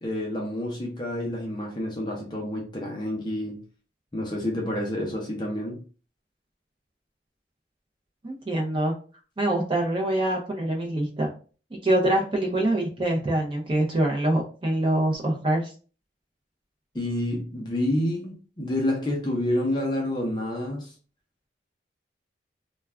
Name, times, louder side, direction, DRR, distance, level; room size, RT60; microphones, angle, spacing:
voice 1, 0.0-3.6 4.1-5.8 16.9-20.9, left 1 dB, 25° left, 0.5 m, -28 dB
voice 2, 8.2-8.9 9.4-11.3 11.8-15.7, right 1 dB, 30° right, 0.5 m, -24 dB
2.3 x 2.2 x 3.3 m
head